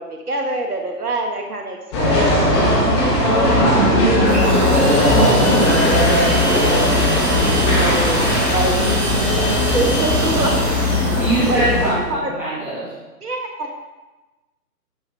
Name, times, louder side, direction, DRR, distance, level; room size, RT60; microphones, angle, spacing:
voice 1, 0.0-7.0 7.6-11.2 11.5-12.4 13.2-13.7, right 2 dB, 65° right, 3 dB, 1.5 m, -27 dB
sound 1, 1.9-11.9, left 1 dB, 15° left, 1.7 m, -17 dB
sound 2, 4.3-11.9, right 1 dB, 40° right, 3.3 m, -26 dB
voice 2, 7.2-7.9 11.2-12.9, right 1 dB, 5° right, -9 dB, 2.1 m, -23 dB
11.0 x 7.8 x 4.4 m, 1.1 s
figure-of-eight pair, 145°, 48 cm